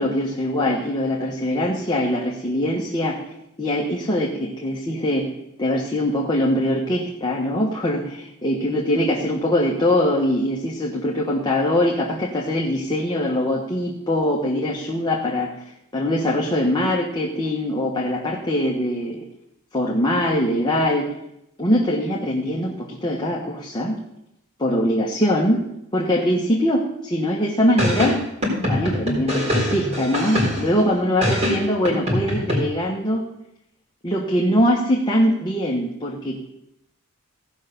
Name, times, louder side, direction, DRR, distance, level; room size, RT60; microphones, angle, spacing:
voice 1, 0.0-3.2 3.6-5.3 5.6-15.5 15.9-19.2 19.7-21.1 21.6-24.0 24.6-25.6 25.9-28.2 28.6-33.2 34.0-36.5, left 1 dB, 20° left, -2 dB, 1.3 m, -22 dB
sound 1, 27.8-30.8 31.2-32.6, left 1 dB, 30° right, 4.2 m, -23 dB
16.5 x 5.7 x 6.7 m, 0.82 s
head